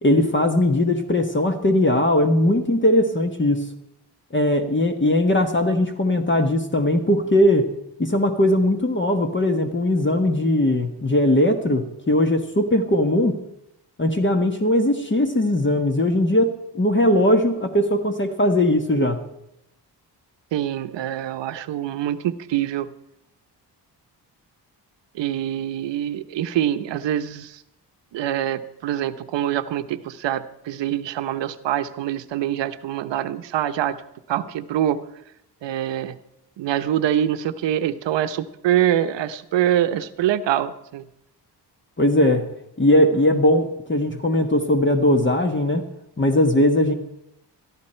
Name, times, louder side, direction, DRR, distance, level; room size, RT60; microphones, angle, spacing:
voice 1, 0.0-3.7 4.3-7.7 8.0-13.4 14.0-19.2 42.0-42.5 42.8-45.9 46.2-46.9, left 1 dB, 25° left, 6 dB, 1.4 m, -19 dB
voice 2, 20.5-22.9 25.1-27.6 28.1-34.0 34.3-35.0 35.6-36.2 36.6-41.0, right 11 dB, 85° right, 11 dB, 0.9 m, -24 dB
18.0 x 13.5 x 4.4 m, 0.80 s
cardioid pair, 80°, 42 cm